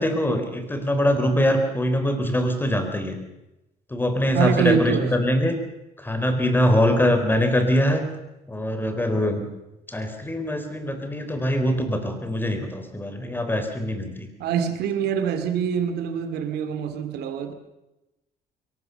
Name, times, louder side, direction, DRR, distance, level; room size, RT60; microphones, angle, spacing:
voice 1, 0.0-3.2 3.9-5.5 6.0-8.0 8.5-9.5 9.9-14.3, equal, 10° left, 4.1 m, -23 dB
voice 2, 4.3-5.2 14.4-17.5, right 7 dB, 75° right, 2.5 m, -25 dB
22.5 x 19.5 x 6.9 m
cardioid pair, 110°, 17 cm